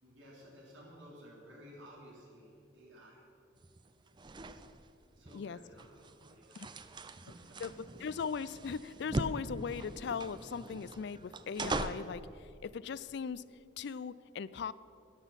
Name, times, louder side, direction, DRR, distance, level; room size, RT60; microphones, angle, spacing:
voice 1, 0.0-3.2 5.2-6.7 7.2-7.6, equal, 85° right, -4 dB, 3.6 m, -55 dB
sound 1, 3.6-12.2, right 2 dB, 25° right, 0.5 m, -41 dB
voice 2, 8.0-13.4 13.8-14.7, left 6 dB, 65° left, 18 dB, 0.4 m, -39 dB
13.5 x 11.0 x 5.8 m, 2.6 s
head